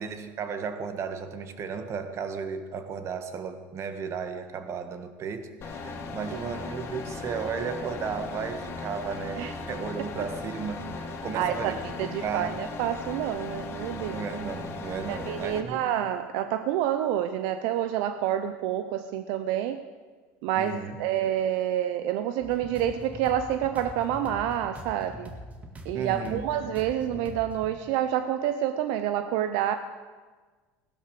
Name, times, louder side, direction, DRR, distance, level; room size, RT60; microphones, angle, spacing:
voice 1, 0.0-10.8 11.2-12.6 13.9-15.8 20.6-21.0 25.9-26.5, right 6 dB, 45° right, 9 dB, 1.7 m, -34 dB
sound 1, 5.6-15.6, left 3 dB, 35° left, 2.8 m, -37 dB
voice 2, 11.3-11.7 12.0-14.2 15.1-19.8 20.4-25.3 25.8-29.8, right 11 dB, 70° right, 10 dB, 0.8 m, -28 dB
sound 2, 22.4-27.7, equal, 20° right, 2.1 m, -43 dB
17.0 x 12.0 x 6.7 m, 1.4 s
supercardioid pair, 115°, 7 cm